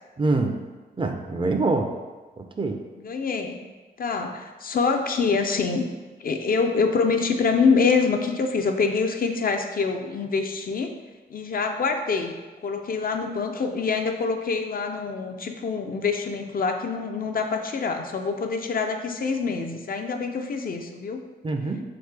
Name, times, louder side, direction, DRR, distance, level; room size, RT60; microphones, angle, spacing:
voice 1, 0.2-0.6 1.0-1.9 2.4-2.8 21.4-21.8, right 3 dB, 30° right, 4 dB, 0.4 m, -25 dB
voice 2, 3.0-3.6 4.0-5.9 6.2-10.9 11.3-12.4 12.6-21.2, left 4 dB, 55° left, 5 dB, 0.4 m, -25 dB
3.8 x 3.5 x 3.2 m, 1.3 s
wide cardioid pair, 100°, 18 cm